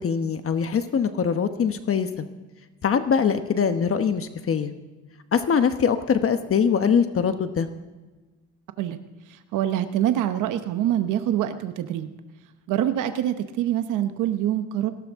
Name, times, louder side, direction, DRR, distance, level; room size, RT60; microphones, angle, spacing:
voice 1, 0.0-2.3 2.8-4.7 5.3-7.7, left 6 dB, 45° left, 9 dB, 1.1 m, -23 dB
voice 2, 9.3-12.1 12.7-14.9, right 11 dB, 90° right, 9 dB, 0.9 m, -25 dB
18.5 x 17.0 x 3.6 m, 1.2 s
cardioid pair, 90°, 30 cm